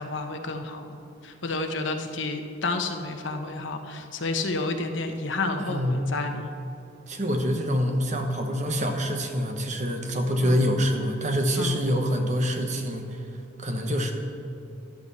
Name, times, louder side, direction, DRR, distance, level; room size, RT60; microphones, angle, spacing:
voice 1, 0.0-6.5 10.4-10.6 11.6-11.8, left 3 dB, 65° left, 4 dB, 1.1 m, -30 dB
voice 2, 5.6-6.0 7.1-13.3 13.6-14.1, equal, 35° right, 4 dB, 1.2 m, -26 dB
13.5 x 11.5 x 4.3 m, 2.9 s
head